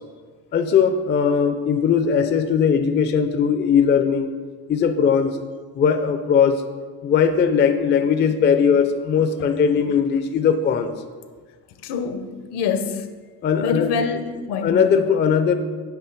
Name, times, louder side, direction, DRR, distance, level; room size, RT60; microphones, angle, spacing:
voice 1, 0.5-4.3 4.7-5.4 5.7-6.6 7.0-10.9 13.4-13.9 14.6-15.6, left 7 dB, 25° left, 8 dB, 0.4 m, -19 dB
voice 2, 11.8-13.1 13.6-14.9, left 6 dB, 65° left, 9 dB, 0.7 m, -26 dB
8.0 x 3.2 x 4.5 m, 1.5 s
cardioid pair, 95°, 43 cm